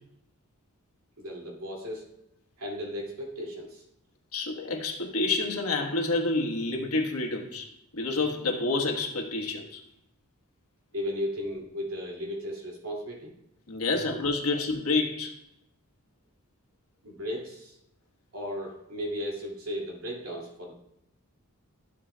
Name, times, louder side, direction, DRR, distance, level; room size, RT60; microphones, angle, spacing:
voice 1, 1.2-2.0 2.6-3.8 10.9-13.3 13.9-14.0 17.0-17.8 18.3-20.7, equal, 70° right, -1 dB, 2.4 m, -35 dB
voice 2, 4.3-9.8 13.7-15.3, left 3 dB, 90° left, 2 dB, 1.3 m, -28 dB
13.0 x 7.5 x 2.2 m, 0.81 s
head